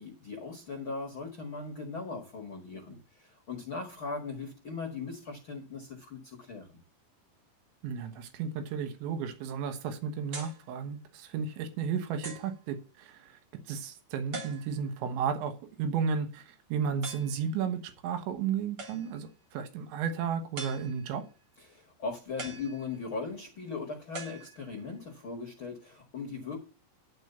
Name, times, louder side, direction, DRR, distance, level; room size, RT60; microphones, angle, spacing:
voice 1, 0.0-6.8 21.6-26.6, left 4 dB, 60° left, 2 dB, 1.3 m, -39 dB
voice 2, 7.8-13.4 13.7-21.2, right 6 dB, 85° right, 8 dB, 3.6 m, -33 dB
sound 1, 10.3-10.7 11.4-11.5 12.2-12.6 14.3-15.0 17.0-17.4 18.8-19.3 20.6-21.3 22.4-23.3 24.1-25.0, right 2 dB, 40° right, 2.1 m, -43 dB
11.5 x 4.8 x 6.7 m, 0.35 s
omnidirectional pair, 5.1 m